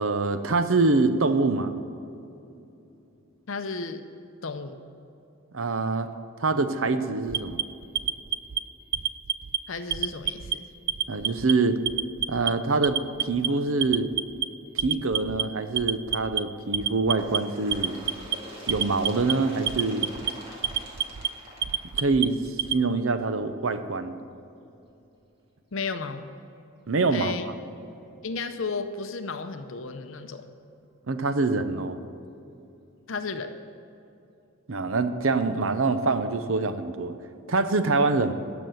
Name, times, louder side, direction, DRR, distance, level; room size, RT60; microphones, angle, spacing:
voice 1, 0.0-1.7 5.5-6.1 6.4-7.6 11.1-11.8 12.3-14.1 14.7-18.0 18.7-20.1 22.0-22.4 22.7-24.1 26.9-27.3 31.1-32.0 34.7-37.1 37.5-38.3, right 3 dB, 70° right, 10 dB, 0.7 m, -25 dB
voice 2, 3.5-4.0 4.4-4.8 9.7-10.6 25.7-26.3 27.1-27.5 28.2-30.5 33.1-33.5, left 4 dB, 65° left, 8 dB, 0.7 m, -33 dB
Alarm, 7.3-8.6 8.9-9.6 9.9-10.6 10.9-11.5 11.9-12.5 12.8-13.5 13.8-14.5 14.8-15.4 15.8-16.4 16.7-17.4 17.7-18.4 18.7-19.3 19.7-20.3 20.6-21.3 21.6-22.8, right 10 dB, 45° right, 0.4 m, -27 dB
Bird, 17.1-22.5 23.4-23.5 23.9-24.0 24.9-25.0 25.9-26.0 26.9-27.0, equal, 25° right, 2.0 m, -44 dB
14.0 x 6.0 x 7.9 m, 2.7 s
head